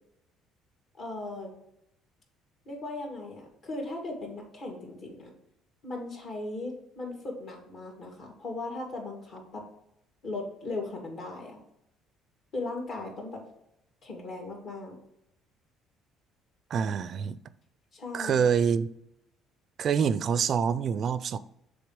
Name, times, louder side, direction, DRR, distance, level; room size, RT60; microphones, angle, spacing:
voice 1, 1.0-1.5 2.7-5.3 5.8-9.7 10.2-11.6 12.5-13.4 14.0-15.0 17.9-18.5, left 2 dB, 55° left, 2.5 m, -38 dB
voice 2, 16.7-17.4 18.1-18.9 19.8-21.4, right 7 dB, 50° right, 0.4 m, -26 dB
6.9 x 3.8 x 5.1 m
supercardioid pair, 90°, 0 cm